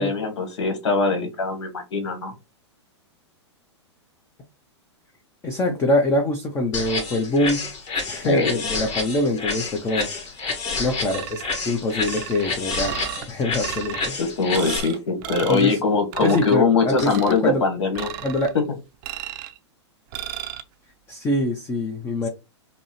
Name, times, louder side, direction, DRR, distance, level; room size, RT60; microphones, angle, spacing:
voice 1, 0.0-2.3 8.2-8.6 14.2-18.1, left 4 dB, 70° left, 7 dB, 1.4 m, -22 dB
voice 2, 5.4-7.7 8.1-10.1 10.8-14.2 14.6-15.0 15.5-15.8 16.2-17.6 18.2-18.5 21.1-22.3, left 1 dB, 15° left, 3 dB, 0.6 m, -24 dB
sound 1, 6.7-14.8, left 4 dB, 40° left, 2.0 m, -29 dB
sound 2, 11.1-11.7 12.0-13.2 13.6-14.1 14.5-14.9 15.2-15.7 16.1-16.6 16.9-17.4 17.9-18.5 19.0-19.6 20.1-20.6, right 12 dB, 45° right, 0.5 m, -34 dB
5.2 x 2.1 x 3.0 m, 0.27 s
hypercardioid pair, 115°, 15 cm